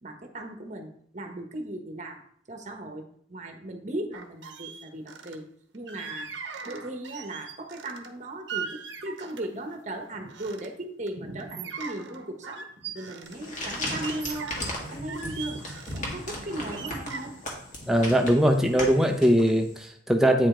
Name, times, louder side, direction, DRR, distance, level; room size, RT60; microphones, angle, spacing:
voice 1, 0.0-3.0 3.3-5.4 5.7-6.3 6.6-12.6 12.9-14.5 14.9-15.6 15.9-17.4, right 1 dB, 40° right, 4 dB, 1.1 m, -37 dB
sound 1, 4.1-5.4 5.9-8.1 8.5-9.6 10.0-10.7 11.1-13.4 13.8-16.0 16.5-18.7 19.0-19.2, right 5 dB, 75° right, 0.9 m, -40 dB
sound 2, 13.2-19.8, left 1 dB, 45° left, 1.8 m, -36 dB
voice 2, 17.9-20.5, equal, ahead, 3 dB, 0.8 m, -21 dB
8.8 x 5.1 x 3.8 m, 0.62 s
head